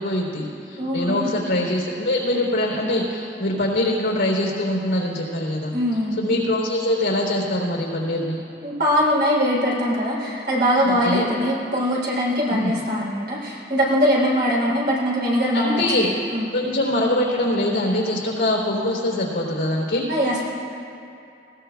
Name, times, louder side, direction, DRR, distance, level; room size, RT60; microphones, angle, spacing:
voice 1, 0.0-5.8 6.2-8.4 10.8-11.3 12.5-12.8 15.5-16.1 16.5-20.0, left 1 dB, 85° left, -1 dB, 3.7 m, -23 dB
voice 2, 0.8-1.4 5.7-6.2 8.6-16.5 20.1-20.4, equal, 55° right, -4 dB, 3.6 m, -22 dB
19.5 x 17.0 x 2.4 m, 2.6 s
head